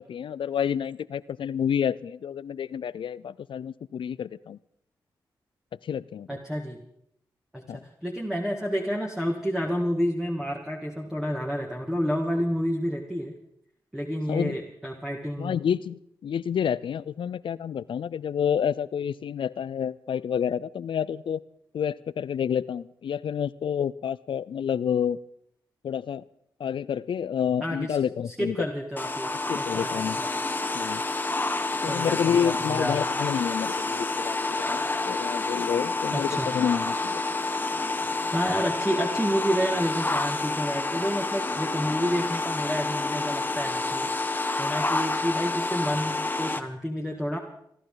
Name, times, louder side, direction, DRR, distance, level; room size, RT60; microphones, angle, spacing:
voice 1, 0.0-4.6 5.8-6.4 7.7-7.8 14.3-14.6 15.4-21.4 21.7-25.2 25.8-26.2 26.6-28.7 29.5-30.2 30.7-31.0 31.8-36.3 36.5-37.2, left 8 dB, 70° left, 19 dB, 0.5 m, -29 dB
voice 2, 6.3-6.8 7.5-13.4 13.9-15.6 27.6-28.0 28.3-29.9 30.2-30.3 31.9-33.0 36.1-36.5 37.9-38.1 38.3-44.3 44.6-47.4, equal, 5° right, 0 dB, 2.1 m, -29 dB
sound 1, 29.0-46.6, left 3 dB, 20° left, 1.3 m, -29 dB
27.5 x 11.5 x 3.9 m, 0.73 s
supercardioid pair, 45°, 9 cm